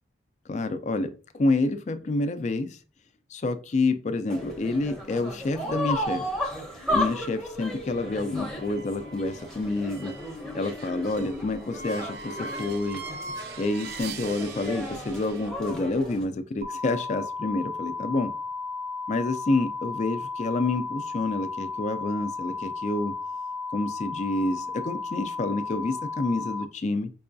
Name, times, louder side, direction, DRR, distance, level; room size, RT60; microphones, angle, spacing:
voice 1, 0.5-2.8 3.3-6.2 6.9-10.1 10.5-13.0 13.6-18.3 19.1-23.1 23.7-27.1, left 2 dB, 35° left, 10 dB, 0.3 m, -28 dB
sound 1, 4.3-16.2, equal, 5° left, 0.7 m, -34 dB
sound 2, 7.8-15.5, right 3 dB, 55° right, 0.5 m, -42 dB
sound 3, 16.6-26.6, left 4 dB, 75° right, 0.8 m, -34 dB
5.3 x 2.2 x 2.6 m, 0.37 s
head